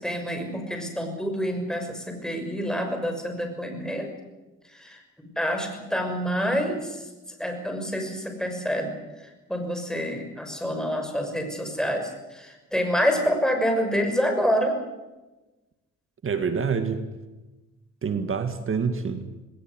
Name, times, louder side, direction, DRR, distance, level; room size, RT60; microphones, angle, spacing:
voice 1, 0.0-4.1 4.7-5.0 5.4-7.0 7.4-8.9 9.5-14.7, equal, ahead, 4 dB, 6.2 m, -27 dB
voice 2, 16.2-17.0 18.0-19.3, right 5 dB, 45° right, 9 dB, 2.2 m, -26 dB
20.0 x 18.5 x 9.7 m, 1.1 s
cardioid pair, 90°, 30 cm